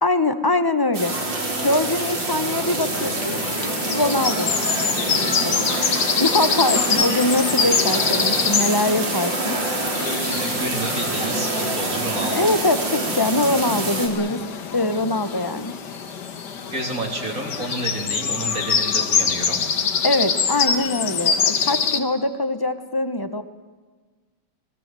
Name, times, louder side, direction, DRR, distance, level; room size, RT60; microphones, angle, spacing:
voice 1, 0.0-1.2 1.6-3.4 3.9-4.5 5.2-5.7 6.2-9.6 12.3-14.4 14.7-15.7 20.0-23.4, left 2 dB, 15° left, 11 dB, 0.7 m, -23 dB
sound 1, 0.9-14.1, right 2 dB, 65° right, 5.2 m, -26 dB
sound 2, 2.9-22.0, left 6 dB, 60° left, 2.0 m, -25 dB
voice 2, 10.2-12.4 16.7-19.6, right 1 dB, 45° right, 1 dB, 3.9 m, -30 dB
27.0 x 21.0 x 7.7 m, 1.4 s
omnidirectional pair, 2.2 m